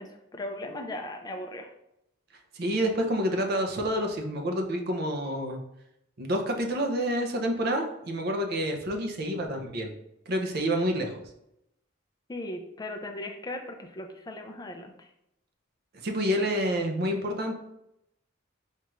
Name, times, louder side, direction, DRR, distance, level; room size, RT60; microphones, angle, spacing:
voice 1, 0.0-1.7 12.3-15.1, left 1 dB, 20° left, 4 dB, 0.4 m, -38 dB
voice 2, 2.5-5.6 6.2-9.9 10.3-11.2 16.0-17.6, equal, 50° right, 3 dB, 0.5 m, -28 dB
4.4 x 2.4 x 3.0 m, 0.83 s
head